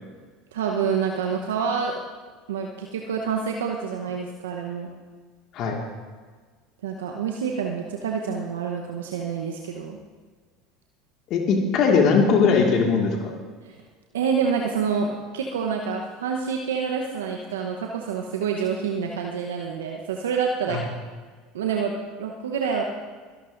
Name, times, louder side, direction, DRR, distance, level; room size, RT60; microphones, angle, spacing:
voice 1, 0.5-2.0 2.5-4.9 6.8-10.0 13.6-13.8 14.1-15.1 15.3-20.8 21.5-22.9, right 6 dB, 85° right, 2 dB, 0.9 m, -27 dB
voice 2, 11.3-13.3 20.7-20.9, left 5 dB, 55° left, 1 dB, 1.9 m, -20 dB
23.5 x 11.5 x 2.6 m, 1.5 s
hypercardioid pair, 80°, 0 cm